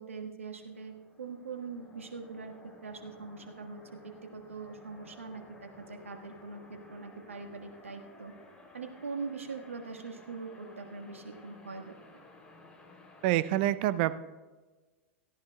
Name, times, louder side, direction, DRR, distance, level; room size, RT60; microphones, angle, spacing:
voice 1, 0.0-2.5 2.8-8.3 8.7-11.9, right 4 dB, 80° right, 4 dB, 1.5 m, -42 dB
sound 1, 0.6-13.3, left 2 dB, 15° left, 3.1 m, -55 dB
voice 2, 13.2-14.1, right 14 dB, 50° right, 16 dB, 0.6 m, -26 dB
17.5 x 14.0 x 2.2 m, 1.3 s
figure-of-eight pair, 95°, 7 cm